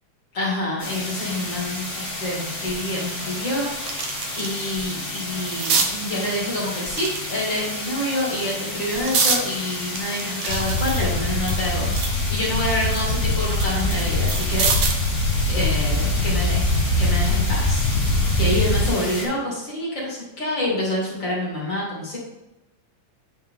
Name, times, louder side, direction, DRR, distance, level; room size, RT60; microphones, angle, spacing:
voice 1, 0.3-4.1 4.4-14.7 15.5-17.9 18.4-22.2, left 1 dB, 40° left, -5 dB, 2.9 m, -27 dB
sound 1, 0.8-19.2, left 1 dB, 20° left, 2.7 m, -32 dB
sound 2, 2.6-2.7 3.2-4.6 5.0-5.9 6.9-7.7 8.3-9.4 10.0-12.2 12.6-15.1 16.4-16.7, right 5 dB, 65° right, 1.4 m, -27 dB
sound 3, 10.5-18.9, left 2 dB, 80° left, 2.3 m, -23 dB
9.6 x 4.5 x 3.6 m, 0.99 s
omnidirectional pair, 3.4 m